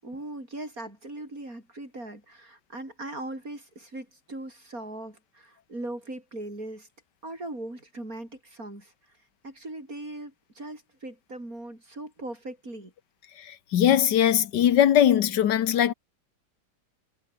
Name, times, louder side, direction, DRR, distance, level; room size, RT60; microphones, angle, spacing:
voice 1, 0.0-6.9 7.2-8.9 9.4-12.9, right 1 dB, 50° right, 8.5 m, -39 dB
voice 2, 13.4-15.9, left 10 dB, 75° left, 1.6 m, -21 dB
omnidirectional pair, 1.9 m